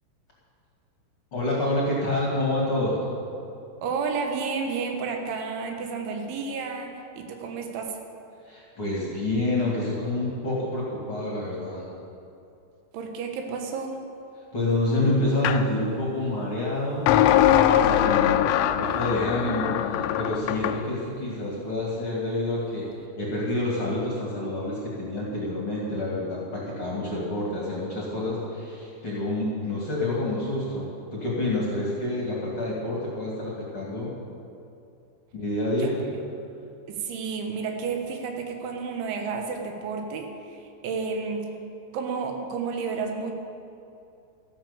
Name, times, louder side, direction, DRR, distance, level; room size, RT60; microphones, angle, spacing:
voice 1, 1.3-3.0 8.4-11.9 14.5-17.1 17.8-18.5 18.7-22.9 23.2-34.1 35.3-36.0, left 1 dB, 40° left, -5 dB, 2.3 m, -28 dB
voice 2, 3.8-8.0 12.9-14.0 35.8-35.9 36.9-41.5 41.9-43.3, right 5 dB, 80° right, 3 dB, 3.7 m, -31 dB
sound 1, 15.4-15.6 17.1-20.8, left 11 dB, 85° left, 2.8 m, -21 dB
13.5 x 11.0 x 7.2 m, 2.6 s
omnidirectional pair, 5.3 m